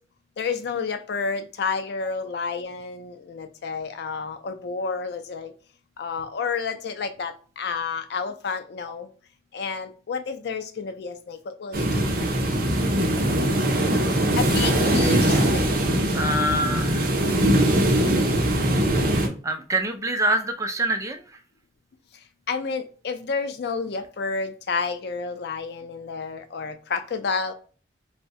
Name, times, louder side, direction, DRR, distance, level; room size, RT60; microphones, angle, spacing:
voice 1, 0.4-5.5 6.0-9.1 9.5-12.0 14.4-15.7 22.5-27.5, left 5 dB, 65° left, 0.4 m, -30 dB
sound 1, 11.7-19.3, right 1 dB, 55° right, 0.6 m, -21 dB
voice 2, 16.1-17.1 19.4-21.2, right 1 dB, 15° right, 0.3 m, -25 dB
2.6 x 2.0 x 3.6 m
head